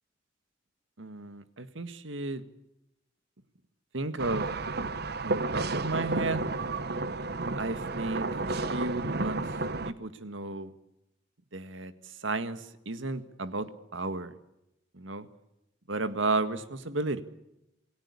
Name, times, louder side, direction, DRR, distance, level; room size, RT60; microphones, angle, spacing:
voice 1, 1.0-2.4 3.9-4.9 5.2-6.5 7.6-9.4 9.8-10.7 11.5-11.9 12.2-14.4 14.9-15.3 15.9-17.2, right 2 dB, 80° right, 11 dB, 1.8 m, -33 dB
sound 1, 4.2-9.9, right 3 dB, 55° right, 1.1 m, -32 dB
27.5 x 18.0 x 8.4 m, 0.87 s
head